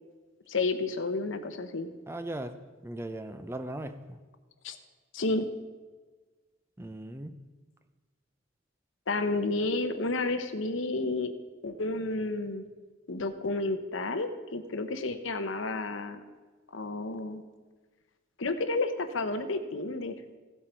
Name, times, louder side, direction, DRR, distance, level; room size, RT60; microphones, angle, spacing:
voice 1, 0.5-1.9 4.6-4.8 5.1-5.5 9.1-11.3 11.6-12.6 13.1-16.2 16.7-17.4 18.4-20.1, left 2 dB, 85° left, 8 dB, 0.9 m, -31 dB
voice 2, 2.1-2.5 2.8-4.2 6.8-7.3, right 1 dB, 15° right, 9 dB, 0.5 m, -38 dB
15.5 x 7.9 x 4.5 m, 1.3 s
head